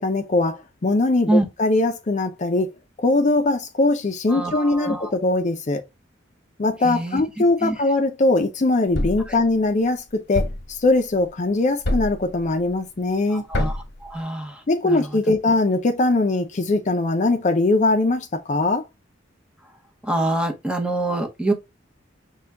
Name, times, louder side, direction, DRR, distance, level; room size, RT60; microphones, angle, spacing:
voice 1, 0.0-2.7 3.0-5.8 6.6-13.4 14.7-18.8, left 2 dB, 40° left, 0.5 m, -21 dB
voice 2, 4.3-5.1 6.8-7.2 7.6-7.7 13.3-15.0 20.0-21.5, right 1 dB, 5° right, 0.8 m, -25 dB
Thump thud, 8.9-9.3 10.3-10.7 11.8-12.2 13.5-13.9, left 1 dB, 60° left, 1.1 m, -24 dB
5.5 x 2.2 x 3.4 m
head